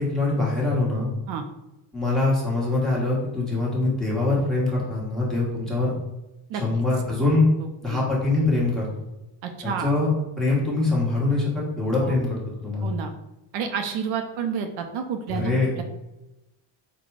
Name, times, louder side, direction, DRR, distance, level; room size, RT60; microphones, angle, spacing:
voice 1, 0.0-1.1 1.9-5.9 6.5-7.4 7.8-8.9 9.6-10.1 10.4-12.9 15.3-15.7, left 2 dB, ahead, -6 dB, 1.2 m, -23 dB
voice 2, 9.4-9.9 12.0-12.3 12.8-13.1 13.5-15.8, right 7 dB, 75° right, 6 dB, 0.6 m, -30 dB
4.0 x 2.3 x 4.6 m, 0.97 s
cardioid pair, 145°, 48 cm